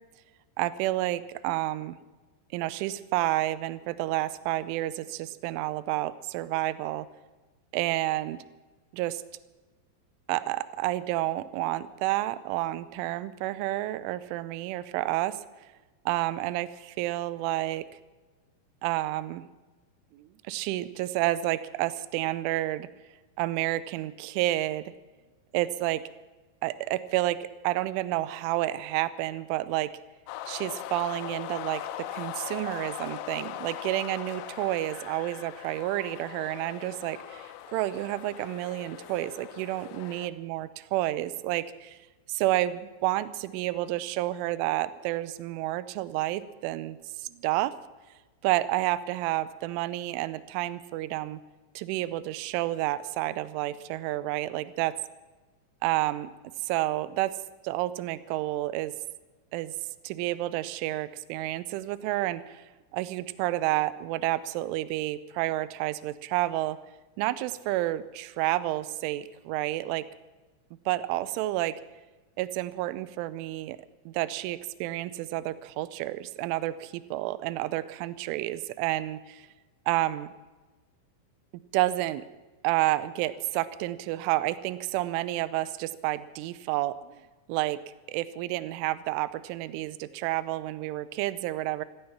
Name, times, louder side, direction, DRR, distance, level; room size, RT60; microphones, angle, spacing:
voice 1, 0.6-2.0 2.5-7.1 7.7-8.4 8.9-9.2 10.3-15.4 16.1-17.9 18.8-19.5 20.1-22.9 23.4-24.9 25.5-26.0 26.6-29.9 30.5-42.0 42.3-47.7 48.4-51.4 51.8-54.9 55.8-56.3 56.6-57.4 57.6-58.9 59.5-59.7 60.0-62.6 62.9-66.8 67.2-70.1 70.9-71.8 72.4-73.8 74.1-79.5 79.9-80.3 81.7-82.2 82.6-87.2 87.5-87.8 88.1-91.9, right 16 dB, 80° right, 16 dB, 3.0 m, -30 dB
sound 1, 30.3-40.3, left 12 dB, 85° left, 3.4 m, -40 dB
16.0 x 15.5 x 5.9 m, 1.2 s
omnidirectional pair, 5.8 m